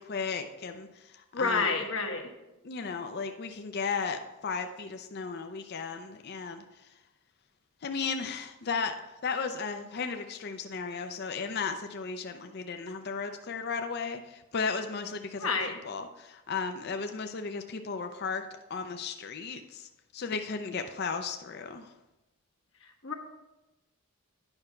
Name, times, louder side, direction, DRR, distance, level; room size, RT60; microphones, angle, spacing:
voice 1, 0.0-1.9 2.6-6.6 7.8-15.5 15.8-18.4 18.7-21.9, left 5 dB, 50° left, 7 dB, 0.5 m, -35 dB
voice 2, 1.3-2.2 15.4-15.7 23.0-23.1, left 4 dB, 70° left, 3 dB, 1.3 m, -28 dB
9.8 x 5.8 x 4.4 m, 1.0 s
head